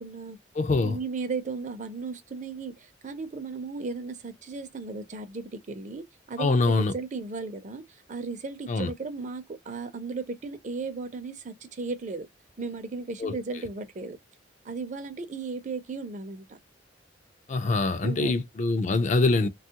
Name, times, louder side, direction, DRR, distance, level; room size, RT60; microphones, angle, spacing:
voice 1, 0.0-0.4 0.8-12.3 12.6-14.2 14.6-16.6 18.0-18.4, right 4 dB, 40° right, 0.5 m, -35 dB
voice 2, 0.6-1.0 6.4-6.9 8.7-8.9 13.2-13.4 17.5-19.5, left 3 dB, 40° left, 0.3 m, -24 dB
3.1 x 2.3 x 2.7 m
head